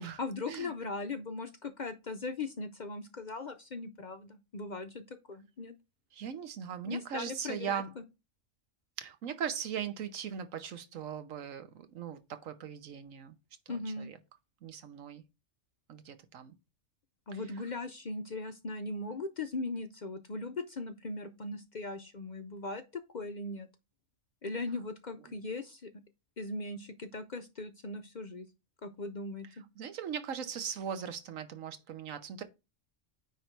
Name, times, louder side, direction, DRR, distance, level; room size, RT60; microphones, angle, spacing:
voice 1, 0.2-5.7 6.9-8.0 13.7-14.1 17.3-23.7 24.4-25.9 26.4-28.5 28.8-29.6, left 3 dB, 50° left, 0.6 m, -39 dB
voice 2, 6.1-7.9 9.0-13.4 13.7-14.2 14.6-15.2 15.9-16.5 17.3-17.6 25.3-25.4 29.8-32.4, right 8 dB, 85° right, 1.3 m, -39 dB
9.3 x 3.2 x 4.5 m
omnidirectional pair, 1.3 m